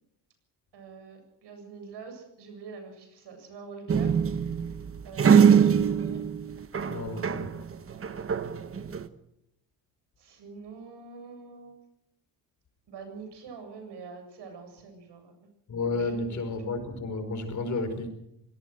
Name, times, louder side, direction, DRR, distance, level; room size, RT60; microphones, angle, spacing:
voice 1, 0.7-4.5 5.0-6.2 7.9-8.8 10.2-11.8 12.9-15.3 16.0-16.4, right 5 dB, 80° right, 6 dB, 7.7 m, -45 dB
sound 1, 3.9-7.6 7.9-9.1, right 7 dB, 30° right, 1.1 m, -23 dB
voice 2, 6.9-7.7 15.7-18.1, left 3 dB, 45° left, 7 dB, 4.9 m, -32 dB
25.5 x 18.0 x 6.4 m, 0.79 s
cardioid pair, 145°, 41 cm